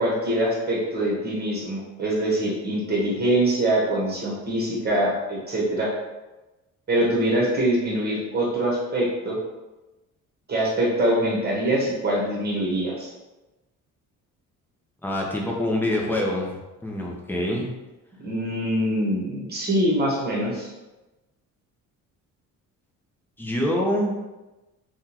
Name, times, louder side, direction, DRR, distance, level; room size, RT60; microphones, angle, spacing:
voice 1, 0.0-5.9 6.9-9.4 10.5-13.1 18.2-20.7, right 1 dB, 30° right, -4 dB, 1.3 m, -24 dB
voice 2, 15.0-16.5 16.8-17.7 23.4-24.1, left 1 dB, 5° left, -2 dB, 0.7 m, -25 dB
3.5 x 2.4 x 2.9 m, 1.1 s
cardioid pair, 105°, 32 cm